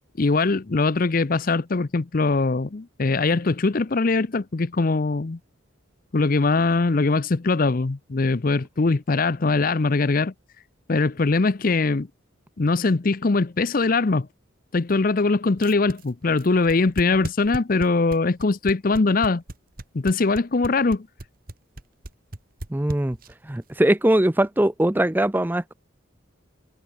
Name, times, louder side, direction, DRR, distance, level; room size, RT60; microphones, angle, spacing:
voice 1, 0.2-5.4 6.1-10.3 10.9-12.1 12.6-14.3 14.7-19.4 19.9-21.1, left 3 dB, 40° left, 0.6 m, -22 dB
sound 1, 15.6-23.5, right 1 dB, 45° right, 1.5 m, -35 dB
voice 2, 22.7-23.2 23.5-25.7, right 1 dB, 10° right, 0.5 m, -21 dB
head